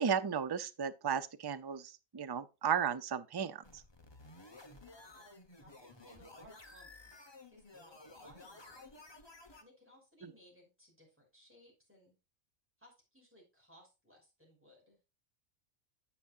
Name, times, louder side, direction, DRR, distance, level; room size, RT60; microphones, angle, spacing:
voice 1, 0.0-3.8, right 7 dB, 35° right, 0.4 m, -34 dB
sound 1, 3.6-9.6, left 2 dB, 20° left, 1.1 m, -55 dB
voice 2, 5.6-7.1 7.5-9.0 9.6-12.2 12.8-15.0, left 1 dB, 10° right, 5.4 m, -62 dB
10.5 x 8.6 x 2.5 m
omnidirectional pair, 1.4 m